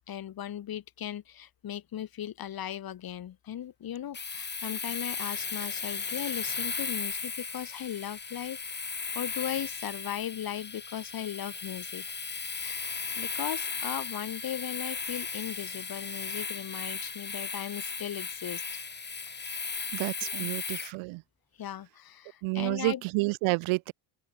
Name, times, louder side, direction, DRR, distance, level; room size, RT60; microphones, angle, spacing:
voice 1, 0.1-12.0 12.6-18.8 20.2-20.6 21.6-23.0, left 10 dB, 45° left, 3.5 m, -38 dB
Domestic sounds home sounds, 4.1-20.9, left 5 dB, 20° left, 3.3 m, -36 dB
voice 2, 19.9-21.2 22.4-23.9, right 25 dB, 80° right, 0.6 m, -30 dB
open air
cardioid pair, 135°, 48 cm